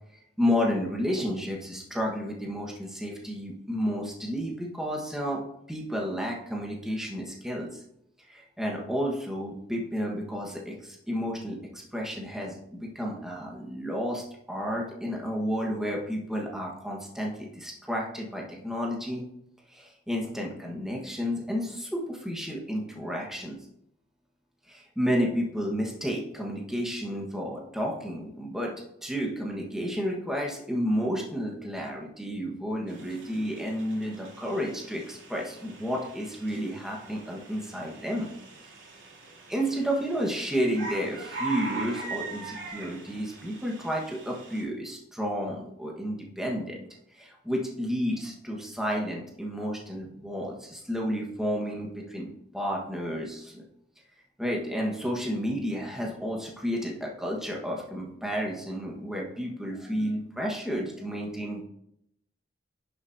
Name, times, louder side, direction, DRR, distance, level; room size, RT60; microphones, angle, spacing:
voice 1, 0.4-7.8 8.3-19.2 19.7-23.6 24.7-28.7 29.0-38.3 39.5-46.8 47.1-53.6 54.4-61.6, equal, ahead, -1 dB, 1.4 m, -31 dB
sound 1, 32.9-44.6, right 3 dB, 65° right, 2.6 m, -42 dB
10.5 x 6.8 x 2.8 m, 0.76 s
head